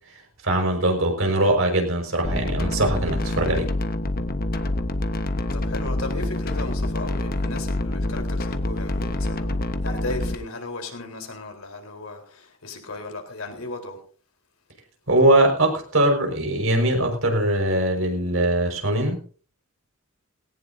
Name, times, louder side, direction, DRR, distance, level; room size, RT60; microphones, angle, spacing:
voice 1, 0.4-3.7 15.1-19.2, right 1 dB, 70° right, 5.1 m, -21 dB
sound 1, 2.2-10.4, left 1 dB, 45° left, 1.2 m, -26 dB
voice 2, 5.5-14.0, left 2 dB, 85° left, 4.0 m, -35 dB
18.5 x 18.0 x 2.7 m
head